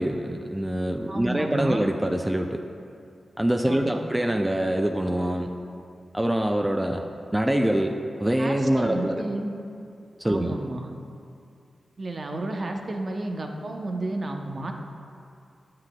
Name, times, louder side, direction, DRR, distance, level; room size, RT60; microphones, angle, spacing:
voice 1, 0.0-2.6 3.4-5.5 6.1-7.0 7.3-9.2 10.2-10.6, right 1 dB, 15° right, 4 dB, 0.4 m, -25 dB
voice 2, 1.1-1.9 3.7-4.0 8.4-9.5 10.2-10.9 12.0-14.7, right 2 dB, 55° right, 3 dB, 0.7 m, -32 dB
9.5 x 7.6 x 2.3 m, 2.5 s
cardioid pair, 50°, 0 cm